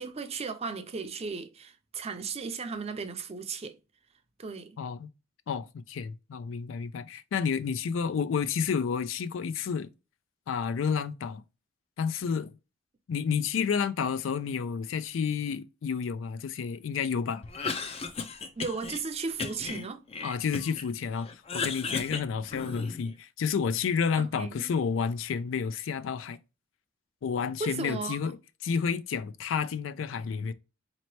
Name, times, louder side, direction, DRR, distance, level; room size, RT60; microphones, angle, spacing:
voice 1, 0.0-3.8 4.4-4.8 18.6-20.0 24.2-24.7 27.6-28.3, right 4 dB, 35° right, 0.5 m, -36 dB
voice 2, 4.8-5.1 5.5-9.9 10.5-11.4 12.0-12.5 13.1-17.4 20.2-26.4 27.2-28.4 28.6-30.5, left 6 dB, 90° left, 0.4 m, -30 dB
Cough, 17.4-19.0 19.4-20.9 21.2-23.1, left 4 dB, 30° left, 0.5 m, -35 dB
4.1 x 2.9 x 3.0 m
head